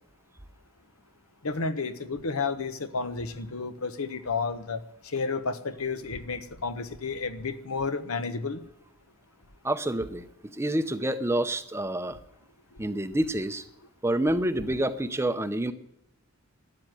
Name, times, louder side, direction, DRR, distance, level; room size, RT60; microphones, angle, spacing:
voice 1, 1.4-8.6 12.9-13.2, left 4 dB, 70° left, 11 dB, 1.1 m, -32 dB
voice 2, 9.6-12.2 12.8-13.6 14.0-15.7, right 1 dB, 10° right, 10 dB, 0.7 m, -28 dB
13.0 x 9.5 x 9.0 m, 0.79 s
head